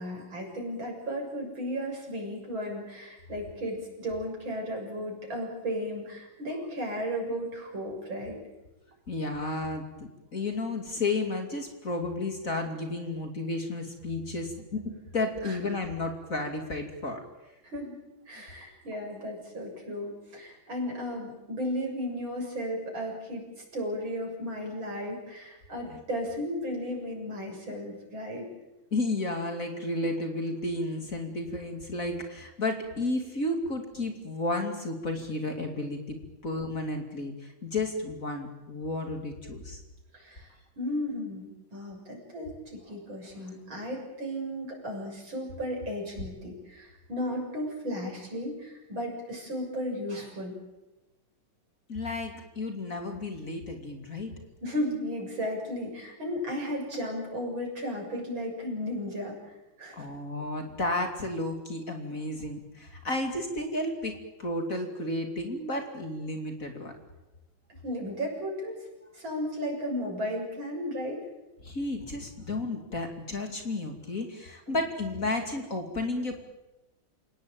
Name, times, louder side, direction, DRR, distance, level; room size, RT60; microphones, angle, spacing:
voice 1, 0.0-8.4 15.4-15.6 17.6-18.0 18.3-23.4 23.7-28.5 40.1-40.5 40.8-50.6 54.6-59.4 59.8-60.1 67.8-68.9 69.1-71.3 74.7-74.8, equal, 65° right, 0 dB, 7.8 m, -34 dB
voice 2, 9.1-14.8 15.1-17.2 25.9-26.0 28.9-36.2 36.4-39.8 51.9-54.3 59.9-66.9 71.6-76.4, left 2 dB, 40° left, 4 dB, 3.1 m, -32 dB
29.5 x 17.5 x 9.0 m, 1.0 s
omnidirectional pair, 2.3 m